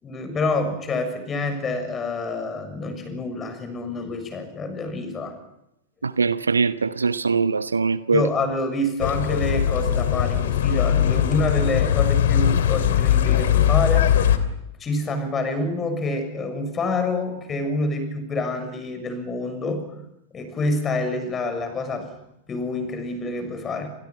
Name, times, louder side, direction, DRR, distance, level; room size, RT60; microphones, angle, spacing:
voice 1, 0.0-5.4 8.1-14.3 14.8-19.9 20.3-22.1 22.5-23.9, left 2 dB, 20° left, 8 dB, 6.9 m, -27 dB
voice 2, 6.0-8.2, right 5 dB, 75° right, 14 dB, 1.0 m, -22 dB
sound 1, 9.0-14.4, left 10 dB, 60° left, 2.7 m, -20 dB
29.0 x 28.5 x 5.9 m, 0.85 s
figure-of-eight pair, 90°, 0 cm